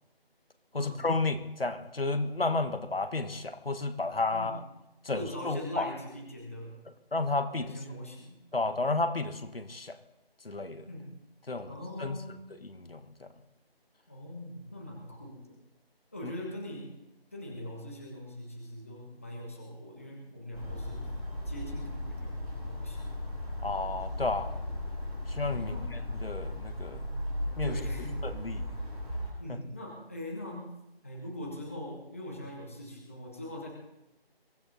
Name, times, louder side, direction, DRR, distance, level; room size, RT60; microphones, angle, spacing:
voice 1, 0.7-4.6 5.0-5.9 7.1-7.7 8.5-10.0 10.4-10.8 11.5-11.7 12.0-12.2 12.6-13.3 16.2-16.3 23.6-24.6 25.3-25.7 26.2-27.2 27.6-27.8 28.2-28.7 29.5-29.6, left 3 dB, 65° left, 9 dB, 1.5 m, -32 dB
voice 2, 5.1-6.7 7.5-8.4 10.9-11.1 11.6-12.4 14.1-15.6 16.1-16.9 17.3-21.1 21.5-22.3 22.7-23.1 25.6-25.9 27.6-28.2 29.4-30.7 31.0-33.7, left 1 dB, 15° left, -1 dB, 1.2 m, -41 dB
sound 1, 20.5-29.3, left 1 dB, 5° right, 3.2 m, -36 dB
23.0 x 15.0 x 4.0 m, 0.89 s
figure-of-eight pair, 170°, 31 cm